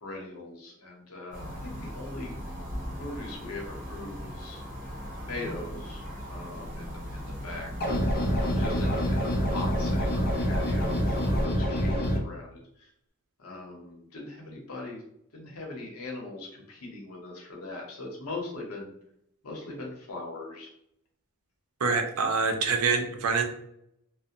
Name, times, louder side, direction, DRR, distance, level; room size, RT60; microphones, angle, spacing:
voice 1, 0.0-2.4 3.0-4.6 5.2-7.7 8.3-12.9 13.4-15.0 15.3-18.9 19.4-20.7, left 2 dB, 80° left, -1 dB, 0.8 m, -40 dB
sound 1, 1.3-11.4, equal, 40° right, 1.4 m, -38 dB
sound 2, 7.8-12.2, equal, 45° left, 0.5 m, -26 dB
voice 2, 21.8-23.4, right 4 dB, 85° right, 4 dB, 0.5 m, -25 dB
2.5 x 2.0 x 2.8 m, 0.74 s
head